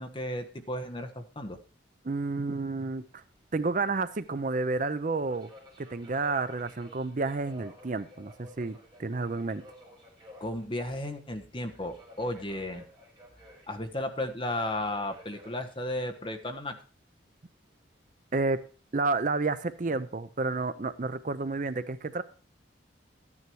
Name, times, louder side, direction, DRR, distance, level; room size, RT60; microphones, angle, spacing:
voice 1, 0.0-1.6 10.4-12.9 13.7-16.8, left 1 dB, 25° left, 5 dB, 1.3 m, -34 dB
voice 2, 2.0-3.2 3.5-5.5 5.8-9.6 18.3-18.6 18.9-22.2, right 3 dB, 45° right, 13 dB, 0.6 m, -30 dB
Subway metro underground, 2.2-20.6, left 1 dB, 25° right, 5.2 m, -56 dB
13.5 x 9.8 x 4.6 m, 0.39 s
head